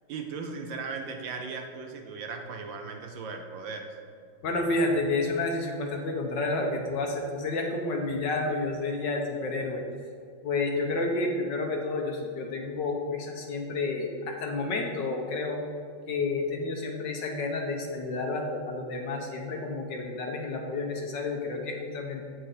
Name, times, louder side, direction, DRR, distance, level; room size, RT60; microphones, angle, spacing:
voice 1, 0.1-3.9, right 4 dB, 70° right, 4 dB, 1.4 m, -37 dB
voice 2, 4.4-9.8 10.4-15.6 16.1-22.3, left 2 dB, 65° left, 2 dB, 1.5 m, -30 dB
7.9 x 7.7 x 4.2 m, 2.3 s
omnidirectional pair, 2.3 m